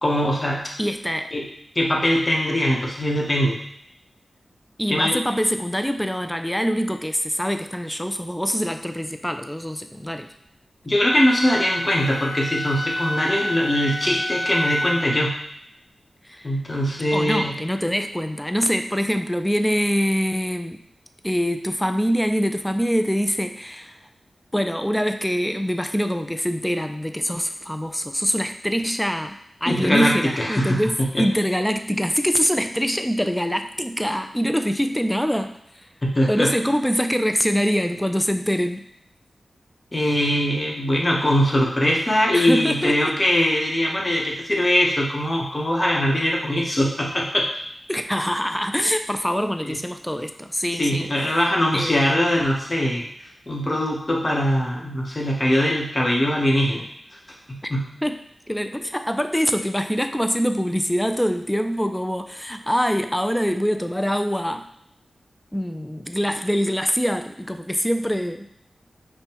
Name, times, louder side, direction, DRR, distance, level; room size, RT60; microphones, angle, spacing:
voice 1, 0.0-0.6 1.3-1.4 1.8-3.6 4.9-5.2 10.8-15.4 16.4-17.5 29.7-31.2 36.0-36.5 39.9-47.5 49.7-49.8 50.8-53.0 53.5-56.8 57.5-57.9, equal, 30° left, -2 dB, 0.9 m, -21 dB
voice 2, 0.8-1.3 4.8-10.3 16.3-16.5 17.1-20.8 21.2-24.0 24.5-35.9 36.2-38.9 42.3-43.1 47.9-51.5 51.7-52.3 58.0-64.7 65.5-68.5, equal, 5° left, 7 dB, 0.3 m, -24 dB
Wind instrument woodwind instrument, 11.0-15.2, left 1 dB, 40° right, 1.4 m, -28 dB
5.2 x 2.2 x 2.9 m, 0.73 s
wide cardioid pair, 65°, 0 cm